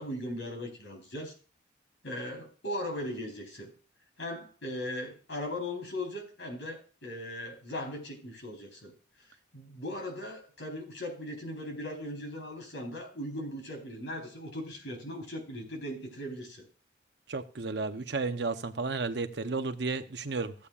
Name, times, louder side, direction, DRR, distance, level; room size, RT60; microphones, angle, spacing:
voice 1, 0.0-1.3 2.0-3.7 4.2-8.9 9.5-16.6, left 1 dB, 75° left, 4.1 m, -38 dB
voice 2, 17.3-20.5, right 3 dB, 60° right, 0.8 m, -33 dB
16.0 x 8.5 x 2.4 m
head